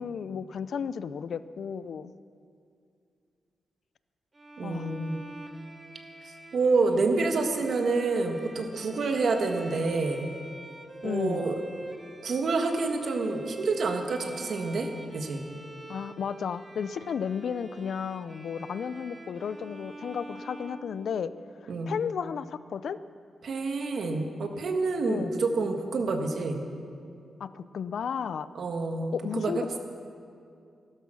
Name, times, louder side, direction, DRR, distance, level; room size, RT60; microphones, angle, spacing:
voice 1, 0.0-2.1 4.6-4.9 11.0-11.5 15.9-21.3 21.9-23.0 25.1-25.4 27.4-28.5 29.1-29.8, left 7 dB, 70° left, 15 dB, 0.5 m, -33 dB
Bowed string instrument, 4.3-21.6, right 2 dB, 20° right, 1.3 m, -46 dB
voice 2, 4.6-5.2 6.2-10.3 11.0-11.6 12.2-15.4 21.7-22.0 23.4-26.6 28.5-29.8, right 3 dB, 60° right, 4 dB, 1.6 m, -28 dB
15.5 x 13.0 x 6.3 m, 2.4 s
wide cardioid pair, 130°, 0 cm